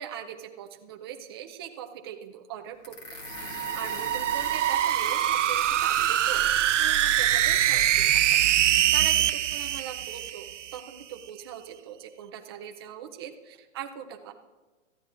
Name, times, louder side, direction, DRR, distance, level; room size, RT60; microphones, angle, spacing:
voice 1, 0.0-14.3, right 9 dB, 20° right, 4 dB, 0.5 m, -41 dB
sound 1, 2.8-8.5, left 1 dB, 25° left, 1.5 m, -42 dB
sound 2, 3.3-10.8, right 11 dB, 75° right, 0.6 m, -24 dB
19.5 x 14.0 x 2.5 m, 1.2 s
hypercardioid pair, 165°, 37 cm